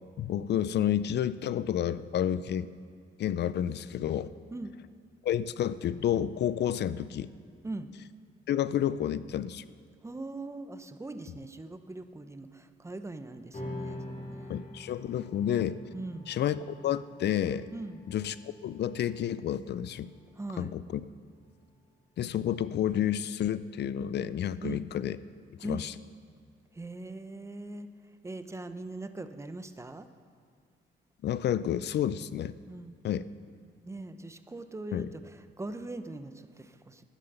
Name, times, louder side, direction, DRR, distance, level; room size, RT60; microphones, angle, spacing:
voice 1, 0.2-2.7 3.2-4.3 5.2-7.3 8.5-9.6 14.5-15.8 16.3-17.7 18.1-18.4 18.6-20.1 20.6-21.0 22.2-25.2 25.5-25.9 31.2-32.5 33.0-33.3 34.9-35.1, left 10 dB, 60° left, 16 dB, 0.5 m, -30 dB
voice 2, 10.0-14.6 15.9-16.3 17.7-18.0 20.4-20.7 24.6-24.8 25.6-25.9 26.7-27.9 28.2-30.1 32.7-32.9 33.8-37.0, right 2 dB, 15° right, 10 dB, 0.8 m, -41 dB
sound 1, 13.5-20.3, left 1 dB, 40° left, 3.5 m, -45 dB
13.5 x 9.6 x 6.7 m, 2.2 s
cardioid pair, 90°, 20 cm